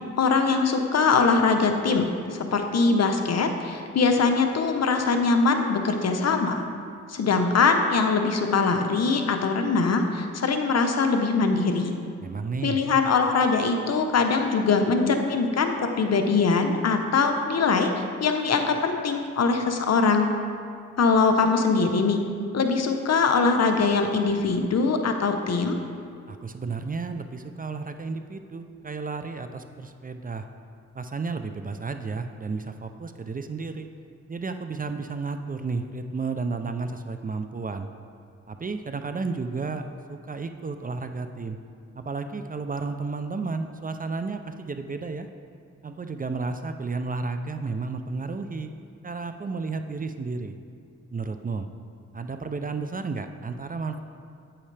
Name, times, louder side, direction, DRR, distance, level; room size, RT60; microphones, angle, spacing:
voice 1, 0.2-6.6 7.1-11.9 12.6-17.9 18.2-20.3 21.0-22.2 22.5-25.8, left 4 dB, 60° left, 5 dB, 0.8 m, -22 dB
voice 2, 12.2-12.8 26.3-30.5 31.0-33.9 34.3-37.9 38.5-39.8 40.1-41.6 41.9-45.3 45.8-48.7 49.0-50.6 51.1-51.7 52.1-54.0, right 4 dB, 30° right, 8 dB, 0.5 m, -32 dB
8.6 x 8.6 x 3.3 m, 2.3 s
cardioid pair, 70°, 30 cm